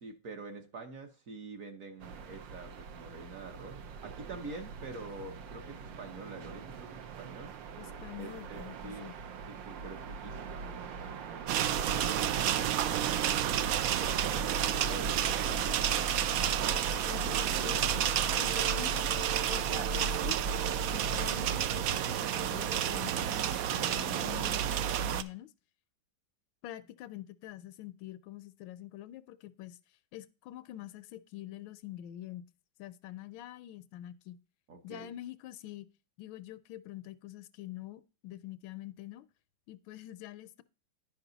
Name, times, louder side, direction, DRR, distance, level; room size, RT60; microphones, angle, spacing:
voice 1, 0.0-7.5 8.2-9.1 9.5-13.5 13.9-16.3 34.7-35.1, right 3 dB, 50° right, 1.3 m, -47 dB
sound 1, 2.0-21.3, right 2 dB, 75° right, 1.5 m, -41 dB
voice 2, 7.8-9.2 17.1-18.0 18.4-20.4 20.8-25.5 26.6-29.8 30.1-32.4 32.8-34.4 34.8-35.9 36.2-39.3 39.7-40.6, left 14 dB, 85° left, 1.4 m, -45 dB
sound 2, 11.5-25.2, right 10 dB, 90° right, 0.7 m, -30 dB
10.5 x 5.5 x 3.9 m
omnidirectional pair, 2.1 m